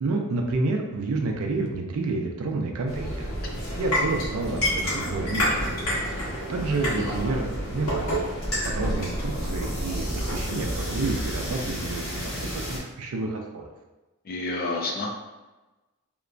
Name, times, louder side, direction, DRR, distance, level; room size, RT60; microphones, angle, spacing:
voice 1, 0.0-3.3 3.8-5.7 6.1-8.3 8.6-13.7, right 3 dB, 85° right, 2 dB, 0.4 m, -29 dB
sound 1, 2.9-12.8, equal, 90° left, 1.3 m, -29 dB
voice 2, 14.3-15.2, left 2 dB, 40° left, 0 dB, 0.4 m, -29 dB
2.8 x 2.2 x 2.5 m, 1.1 s
head